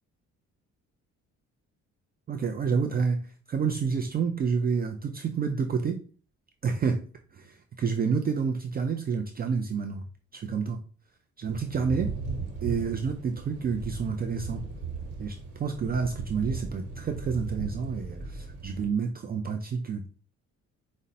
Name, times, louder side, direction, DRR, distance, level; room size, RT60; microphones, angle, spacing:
voice 1, 2.3-6.0 6.6-7.0 7.3-10.1 10.3-10.8 11.4-12.2 12.6-14.6 15.2-20.1, right 5 dB, 30° right, 0.4 m, -29 dB
Thunder / Rain, 11.4-18.9, right 4 dB, 85° right, 1.2 m, -37 dB
5.0 x 2.1 x 2.7 m
cardioid pair, 90°, 30 cm